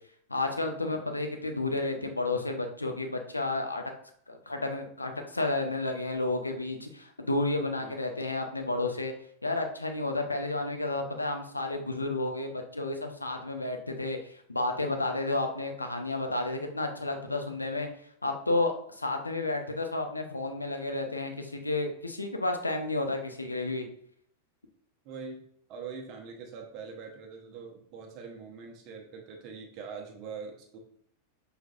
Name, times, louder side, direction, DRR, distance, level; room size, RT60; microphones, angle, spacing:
voice 1, 0.3-3.8 4.3-9.1 9.4-17.9 18.2-23.8, left 2 dB, 80° left, 5 dB, 0.6 m, -31 dB
voice 2, 25.0-25.4 25.7-30.8, right 5 dB, 40° right, 1 dB, 0.9 m, -43 dB
6.0 x 3.3 x 2.5 m, 0.65 s
figure-of-eight pair, 90°, 0 cm